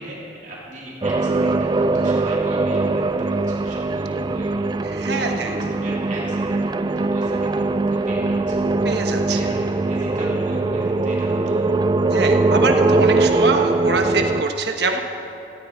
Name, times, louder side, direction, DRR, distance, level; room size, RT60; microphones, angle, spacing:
voice 1, 0.0-4.8 5.1-8.6 9.2-11.7, right 1 dB, 45° right, -5 dB, 3.2 m, -37 dB
sound 1, 1.0-14.4, right 3 dB, 25° right, 0.3 m, -21 dB
voice 2, 4.8-5.5 8.8-9.4 12.1-15.0, right 3 dB, 65° right, 4 dB, 1.3 m, -24 dB
17.5 x 14.0 x 4.5 m, 2.7 s
head